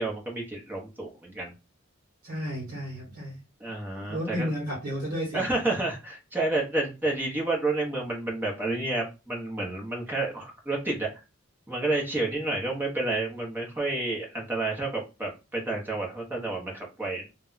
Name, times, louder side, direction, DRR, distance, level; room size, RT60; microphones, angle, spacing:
voice 1, 0.0-1.5 3.6-4.5 5.3-11.1 11.7-17.3, right 2 dB, 10° right, -2 dB, 0.8 m, -30 dB
voice 2, 2.2-3.4 4.0-5.4, equal, 45° right, -4 dB, 1.1 m, -32 dB
2.2 x 2.2 x 3.7 m, 0.28 s
head